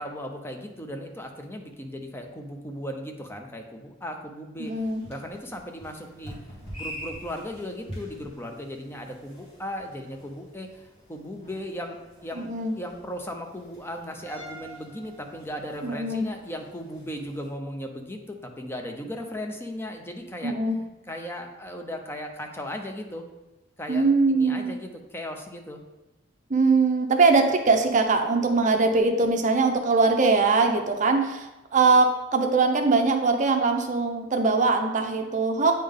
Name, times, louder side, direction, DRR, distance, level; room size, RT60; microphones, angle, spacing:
voice 1, 0.0-6.4 6.7-20.6 21.1-23.3 23.8-25.8, equal, 10° left, 3 dB, 0.6 m, -37 dB
sound 1, 4.6-17.5, equal, 30° left, 2.1 m, -45 dB
voice 2, 4.6-5.0 12.4-12.7 15.8-16.2 20.4-20.8 23.9-24.7 26.5-31.5 31.7-35.7, right 3 dB, 40° right, 5 dB, 0.6 m, -22 dB
8.7 x 3.7 x 3.6 m, 1.1 s
head